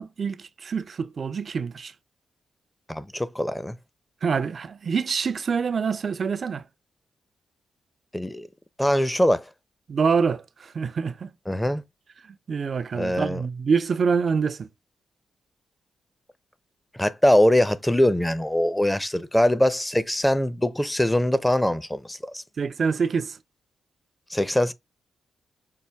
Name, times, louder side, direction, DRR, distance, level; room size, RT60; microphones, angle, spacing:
voice 1, 0.0-1.9 4.2-6.6 9.9-11.3 12.3-14.7 22.6-23.4, right 5 dB, 55° right, 0.4 m, -26 dB
voice 2, 2.9-3.8 8.1-8.5 8.8-9.4 11.5-11.8 13.0-13.4 17.0-22.4 24.3-24.7, left 1 dB, 10° left, 0.6 m, -22 dB
5.6 x 2.2 x 3.3 m
supercardioid pair, 45°, 0 cm